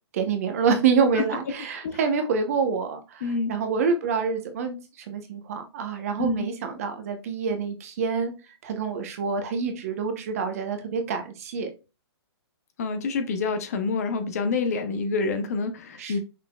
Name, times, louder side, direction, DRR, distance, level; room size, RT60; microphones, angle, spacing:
voice 1, 0.1-8.3 8.6-11.7 16.0-16.2, right 5 dB, 35° right, 0.8 m, -27 dB
voice 2, 3.2-3.5 6.2-6.5 12.8-16.2, left 4 dB, 35° left, 0.6 m, -27 dB
5.7 x 4.1 x 2.2 m
hypercardioid pair, 175°, 14 cm